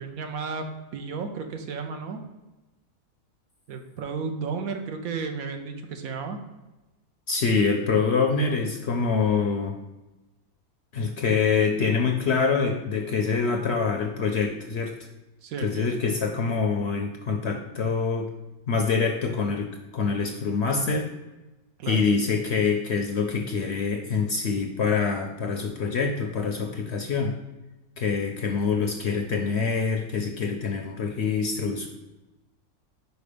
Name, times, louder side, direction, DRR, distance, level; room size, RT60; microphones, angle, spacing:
voice 1, 0.0-2.2 3.7-6.4 15.4-15.9 21.8-22.0, right 5 dB, 70° right, 5 dB, 1.2 m, -33 dB
voice 2, 7.3-9.8 10.9-14.9 15.6-18.3 18.7-21.1 21.8-27.3 28.0-31.9, left 5 dB, 65° left, 4 dB, 0.7 m, -25 dB
5.1 x 4.5 x 5.0 m, 1.1 s
omnidirectional pair, 1.6 m